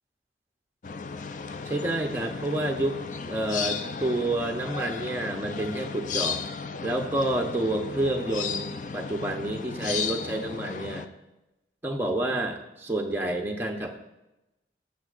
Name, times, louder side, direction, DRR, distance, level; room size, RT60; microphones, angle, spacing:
sound 1, 0.8-11.1, left 5 dB, 45° left, 0.4 m, -34 dB
voice 1, 1.7-3.0 3.3-6.4 6.8-11.1 11.8-14.0, right 1 dB, 10° right, 1 dB, 0.7 m, -29 dB
16.5 x 6.1 x 2.5 m, 0.97 s
head